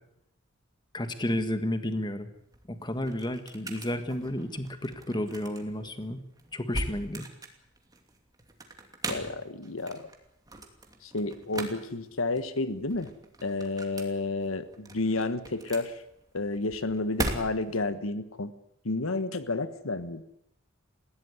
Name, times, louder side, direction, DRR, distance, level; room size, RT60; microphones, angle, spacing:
voice 1, 0.9-2.3 2.7-6.2 6.5-7.3, left 1 dB, 20° left, 1.7 m, -32 dB
sound 1, 2.3-17.9, right 2 dB, 20° right, 2.8 m, -40 dB
voice 2, 9.1-10.1 11.0-13.1 13.4-16.0 16.3-18.5 18.8-20.2, left 2 dB, 80° left, 1.4 m, -31 dB
20.5 x 16.0 x 9.7 m
head